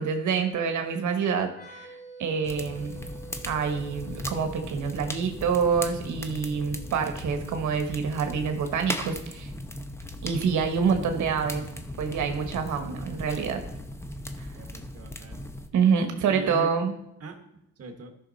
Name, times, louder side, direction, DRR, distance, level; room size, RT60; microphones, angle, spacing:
voice 1, 0.0-3.0 3.5-9.5 10.2-11.7 12.0-13.6 14.4-14.5 15.7-16.9, right 6 dB, 75° right, 6 dB, 1.3 m, -27 dB
sound 1, 1.5-9.0, right 3 dB, 30° left, 4.0 m, -49 dB
sound 2, 2.4-15.7, left 1 dB, 10° left, 0.9 m, -38 dB
voice 2, 14.5-15.5 16.3-16.7 17.2-17.5 17.8-18.1, right 3 dB, 50° right, 5 dB, 1.6 m, -40 dB
13.5 x 6.1 x 4.1 m, 0.83 s
cardioid pair, 90°, 30 cm